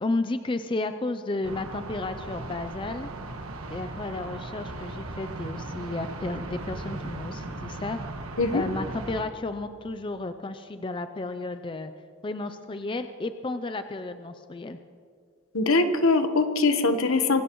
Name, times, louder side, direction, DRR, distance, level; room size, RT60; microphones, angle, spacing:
voice 1, 0.0-3.1 3.7-8.0 8.5-11.9 12.2-14.8, left 2 dB, 25° left, 9 dB, 0.4 m, -32 dB
sound 1, 1.4-9.2, right 2 dB, 85° right, 1.4 m, -37 dB
voice 2, 15.5-17.4, left 3 dB, 75° left, 8 dB, 1.1 m, -22 dB
25.5 x 17.0 x 3.1 m, 2.2 s
head